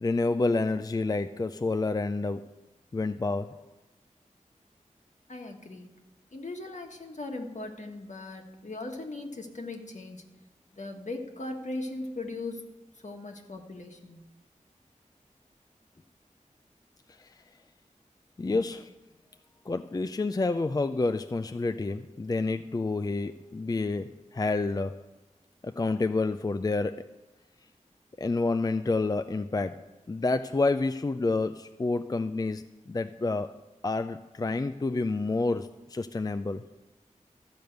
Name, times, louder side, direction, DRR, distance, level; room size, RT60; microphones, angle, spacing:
voice 1, 0.0-2.5 2.9-3.6 17.2-17.3 18.4-18.8 19.7-25.0 25.6-27.1 28.2-33.6 33.8-36.6, left 3 dB, 30° left, 10 dB, 0.3 m, -29 dB
voice 2, 5.3-5.9 6.3-10.2 10.7-12.7 13.0-14.2 18.5-18.6, left 2 dB, 65° left, 3 dB, 1.5 m, -39 dB
13.5 x 5.3 x 7.9 m, 1.1 s
wide cardioid pair, 75°, 13 cm